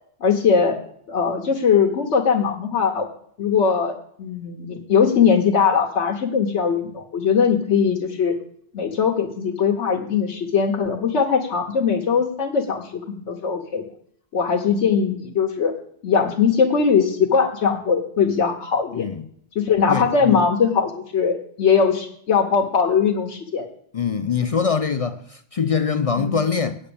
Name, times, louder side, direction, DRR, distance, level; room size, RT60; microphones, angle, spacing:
voice 1, 0.2-0.8 1.1-3.1 3.4-8.4 8.7-13.8 14.3-15.7 16.0-19.1 19.5-23.7 26.2-26.4, left 6 dB, 85° left, 1.3 m, -20 dB
voice 2, 18.9-19.3 19.9-20.4 23.9-26.8, left 6 dB, 55° left, 0.4 m, -23 dB
8.7 x 7.7 x 6.9 m
omnidirectional pair, 1.2 m